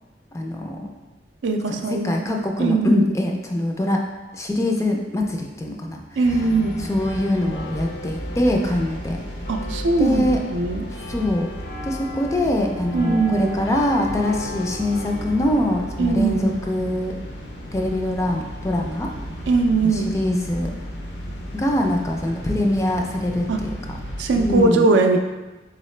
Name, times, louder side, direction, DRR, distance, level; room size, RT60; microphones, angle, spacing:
voice 1, 0.3-0.9 1.7-4.0 4.3-6.0 6.8-9.2 10.0-10.4 11.1-11.5 11.8-17.2 17.7-19.1 19.8-20.7 21.5-23.7 24.3-24.9, left 1 dB, 15° left, 2 dB, 0.3 m, -23 dB
voice 2, 1.4-2.3 2.6-3.0 6.2-6.8 9.5-10.8 12.9-13.5 16.0-16.6 19.5-20.1 23.5-23.6 24.2-25.2, right 3 dB, 80° right, 5 dB, 0.4 m, -20 dB
sound 1, 6.2-24.6, equal, 75° left, 0.7 m, -33 dB
3.8 x 3.5 x 3.2 m, 1.2 s
head